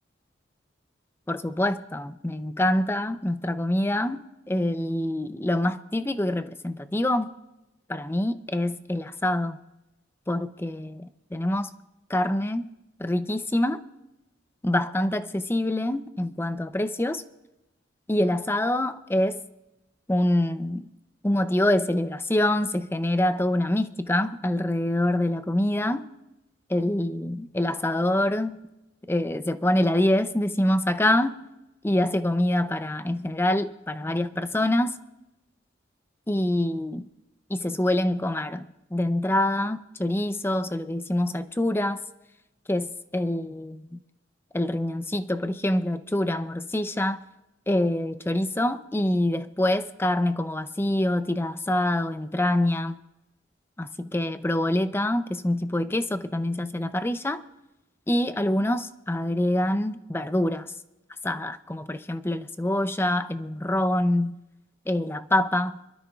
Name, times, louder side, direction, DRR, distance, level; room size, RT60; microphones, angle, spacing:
voice 1, 1.3-7.3 7.9-9.6 10.3-11.7 12.1-12.7 13.0-13.8 14.6-17.2 18.1-19.4 20.1-20.9 21.2-26.0 26.7-28.6 29.1-31.4 31.8-35.0 36.3-37.1 37.5-42.0 42.7-44.0 44.5-47.2 47.7-53.0 53.8-57.4 58.1-60.7 61.2-64.4 64.9-65.8, left 1 dB, 15° left, 0.5 m, -25 dB
25.5 x 13.0 x 2.4 m
head